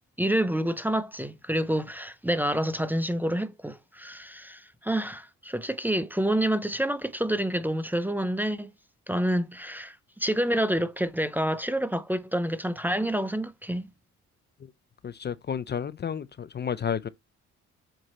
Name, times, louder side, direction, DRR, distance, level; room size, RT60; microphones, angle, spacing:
voice 1, 0.2-8.7 9.1-13.9, right 1 dB, 5° right, 0.6 m, -28 dB
voice 2, 15.0-17.1, left 7 dB, 35° left, 0.6 m, -31 dB
7.9 x 2.9 x 4.2 m
cardioid pair, 90°, 30 cm